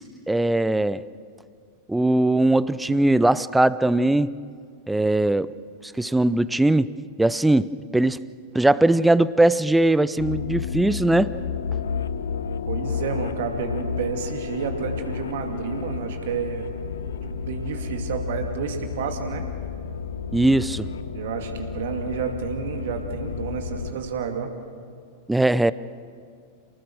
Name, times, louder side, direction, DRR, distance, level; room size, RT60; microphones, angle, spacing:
voice 1, 0.3-1.0 1.9-4.3 4.9-5.5 5.8-8.2 8.5-11.3 20.3-20.9 25.3-25.7, right 1 dB, 5° right, 18 dB, 0.5 m, -20 dB
sound 1, 10.2-23.9, left 6 dB, 65° left, 0.9 m, -31 dB
voice 2, 12.7-16.7 17.2-19.4 21.1-24.5, right 6 dB, 55° right, 4 dB, 2.4 m, -30 dB
29.0 x 19.5 x 6.4 m, 2.2 s
figure-of-eight pair, 90°, 0 cm